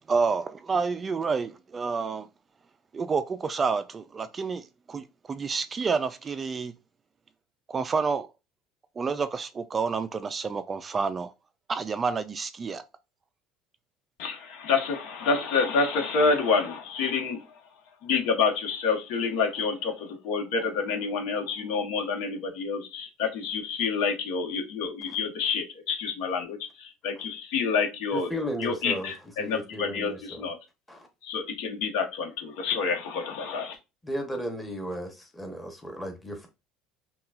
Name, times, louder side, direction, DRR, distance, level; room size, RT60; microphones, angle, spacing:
voice 1, 0.1-2.3 2.9-6.7 7.7-8.3 9.0-11.3 11.7-12.8, right 5 dB, 25° right, 0.3 m, -29 dB
voice 2, 14.2-17.6 18.0-28.3 28.6-30.6 31.2-33.8, left 5 dB, 75° left, 1.1 m, -28 dB
voice 3, 28.1-29.1 29.4-30.5 30.9-31.1 34.0-36.5, equal, 10° left, 1.0 m, -35 dB
5.7 x 2.3 x 2.4 m
supercardioid pair, 115°, 0 cm